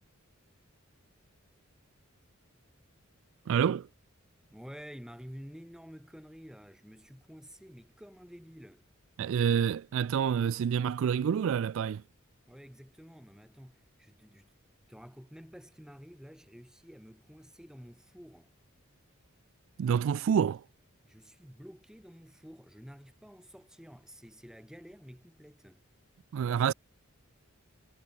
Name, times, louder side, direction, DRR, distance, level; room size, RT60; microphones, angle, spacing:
voice 1, 3.5-3.9 9.2-12.0 19.8-20.6 26.3-26.7, right 8 dB, 65° right, 0.3 m, -28 dB
voice 2, 4.5-8.8 12.5-14.5 14.9-18.5 21.0-25.8, equal, 5° right, 2.9 m, -50 dB
head